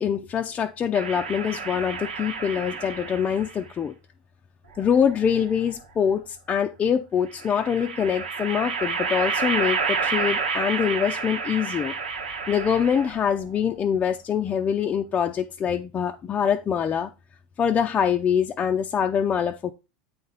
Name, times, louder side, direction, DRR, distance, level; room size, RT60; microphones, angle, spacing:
voice 1, 0.0-3.9 4.8-11.9 12.5-17.1 17.6-19.7, left 8 dB, 30° left, 4 dB, 0.5 m, -24 dB
sound 1, 0.9-3.6 4.7-5.7 7.3-13.3, right 5 dB, 90° right, 1.2 m, -30 dB
8.5 x 4.1 x 4.0 m, 0.29 s
hypercardioid pair, 95°, 5 cm